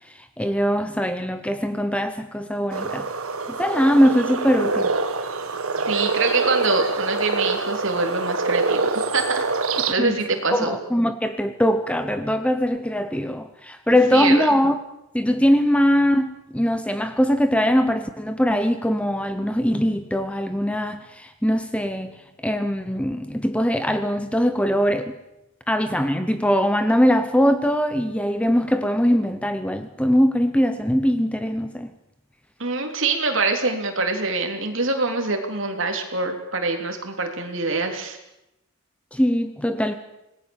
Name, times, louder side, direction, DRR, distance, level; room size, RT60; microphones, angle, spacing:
voice 1, 0.4-3.1 3.5-4.9 10.0-10.2 10.5-14.8 15.1-25.1 25.7-31.9 39.1-40.0, equal, 5° left, 0.9 m, -21 dB
sound 1, 2.7-9.9, right 4 dB, 75° right, 1.6 m, -25 dB
voice 2, 5.9-9.5 9.7-10.8 14.1-14.5 32.6-38.2, right 3 dB, 60° right, 3.5 m, -25 dB
26.5 x 19.5 x 7.3 m
head